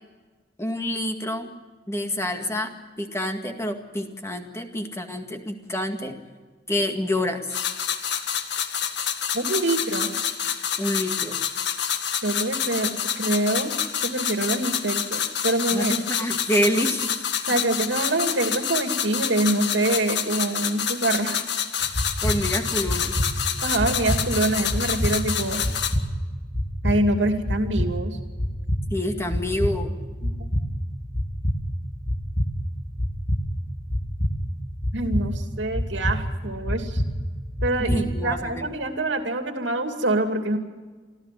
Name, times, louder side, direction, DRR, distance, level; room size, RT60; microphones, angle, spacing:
voice 1, 0.6-1.5 1.9-2.7 3.0-6.2 6.7-7.5 10.8-11.4 15.7-17.2 22.2-23.1 28.9-30.0 37.8-38.7, equal, 15° left, 5 dB, 2.0 m, -27 dB
sound 1, 7.5-25.9, left 8 dB, 65° left, 1.7 m, -28 dB
voice 2, 9.3-10.1 12.2-13.7 14.0-16.0 17.5-21.4 23.6-25.6 26.8-28.2 30.2-30.5 34.9-37.0 37.6-40.6, right 2 dB, 85° right, 5 dB, 2.7 m, -25 dB
sound 2, 21.8-38.4, equal, 50° left, 2.0 m, -28 dB
25.0 x 15.0 x 7.7 m, 1.4 s
head